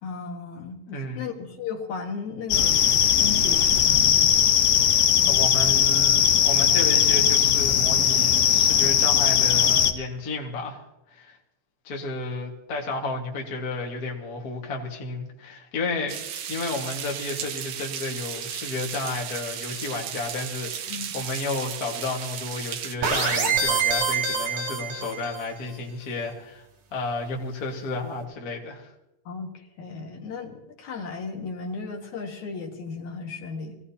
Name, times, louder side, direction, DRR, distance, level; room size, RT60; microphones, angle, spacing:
voice 1, 0.0-2.8 3.2-4.5 20.9-21.3 23.5-23.6 29.3-33.8, left 4 dB, 60° left, 1 dB, 2.7 m, -35 dB
voice 2, 0.9-1.2 4.9-5.0 5.3-10.8 11.1-11.4 11.8-16.2 16.5-26.7 26.9-28.9, left 3 dB, 40° left, 0 dB, 1.5 m, -32 dB
sound 1, 2.5-9.9, left 9 dB, 80° left, 2.6 m, -19 dB
sound 2, 16.1-23.0, right 9 dB, 75° right, 1.5 m, -35 dB
sound 3, 23.0-25.5, right 5 dB, 90° right, 3.9 m, -25 dB
24.5 x 16.5 x 2.8 m, 0.93 s
omnidirectional pair, 4.0 m